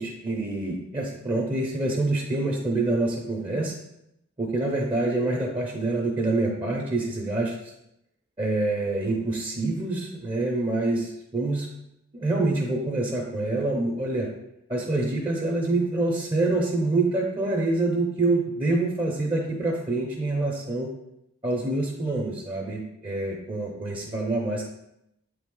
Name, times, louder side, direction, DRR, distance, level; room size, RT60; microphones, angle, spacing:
voice 1, 0.0-3.7 4.4-7.5 8.4-11.7 12.1-14.3 14.7-20.9 21.4-24.6, right 2 dB, 25° right, -2 dB, 0.7 m, -26 dB
8.1 x 3.4 x 3.8 m, 0.82 s
head